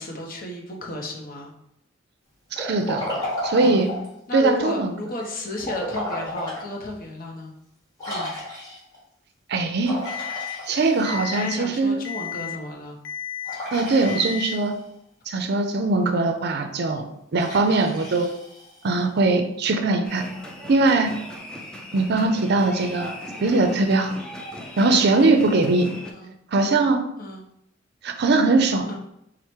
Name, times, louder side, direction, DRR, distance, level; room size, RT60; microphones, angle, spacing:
voice 1, 0.0-1.5 3.6-3.8 4.3-7.5 8.1-8.3 11.2-13.0 14.0-14.3 23.4-23.7 26.1-26.4 27.2-27.4 28.9-29.0, left 1 dB, 50° left, 0 dB, 0.8 m, -34 dB
Liquid, 2.5-4.1 5.6-6.7 7.1-7.2 8.0-9.0 9.8-11.4 13.4-14.8 17.3-19.0, left 1 dB, 20° left, 1.6 m, -33 dB
voice 2, 2.5-3.2 3.4-3.9 4.3-4.9 9.5-10.0 10.7-12.0 13.7-14.7 15.3-18.3 18.8-20.2 20.7-21.1 21.9-24.2 24.8-25.9 26.5-27.0 28.0-28.9, right 3 dB, 60° right, 7 dB, 0.5 m, -21 dB
Alarm, 10.1-10.6 11.1-11.6 12.1-12.6 13.1-13.6 14.1-14.6, left 9 dB, 80° left, 0.4 m, -33 dB
sound 1, 20.0-26.1, left 1 dB, 5° left, 0.4 m, -38 dB
4.6 x 2.1 x 4.4 m, 0.79 s
head